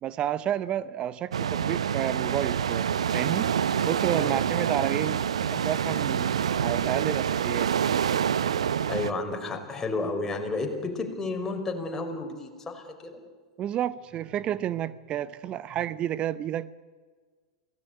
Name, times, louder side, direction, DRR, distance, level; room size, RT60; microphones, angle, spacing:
voice 1, 0.0-2.9 3.1-3.5 3.9-5.2 5.5-6.3 6.6-7.7 13.6-16.7, right 11 dB, 35° right, 17 dB, 0.8 m, -30 dB
sound 1, 1.3-9.1, right 8 dB, 75° right, 0.9 m, -27 dB
voice 2, 4.1-4.4 8.9-13.2, left 3 dB, 15° left, 3 dB, 5.2 m, -32 dB
28.0 x 18.0 x 9.6 m, 1.5 s
figure-of-eight pair, 95°, 3 cm